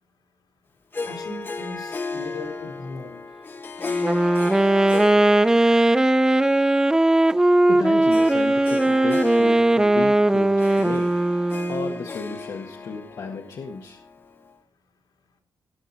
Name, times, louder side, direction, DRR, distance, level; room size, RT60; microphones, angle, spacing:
Harp, 0.9-14.6, left 4 dB, 30° left, 1.3 m, -35 dB
voice 1, 1.0-3.2, left 3 dB, 75° left, 1 dB, 3.5 m, -37 dB
Wind instrument woodwind instrument, 3.9-12.0, right 1 dB, 10° right, 0.5 m, -19 dB
voice 2, 7.7-11.2 11.7-14.0, left 4 dB, 55° left, 1 dB, 1.7 m, -33 dB
18.0 x 7.3 x 4.2 m, 0.43 s
cardioid pair, 110°, 7 cm